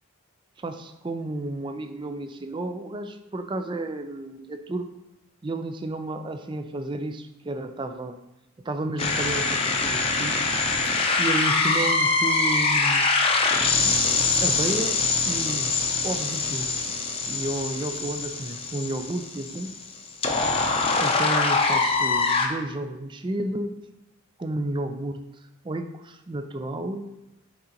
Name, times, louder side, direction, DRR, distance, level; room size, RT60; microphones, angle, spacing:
voice 1, 0.6-4.9 5.4-8.2 8.6-10.5 10.9-13.1 13.8-14.0 14.4-15.0 15.3-15.8 16.0-16.9 17.3-19.7 21.0-23.7 24.4-25.2 25.6-27.1, right 2 dB, 25° right, 8 dB, 0.4 m, -32 dB
sound 1, 9.0-22.5, left 3 dB, 25° left, 0.6 m, -24 dB
10.5 x 3.8 x 2.9 m, 0.92 s
head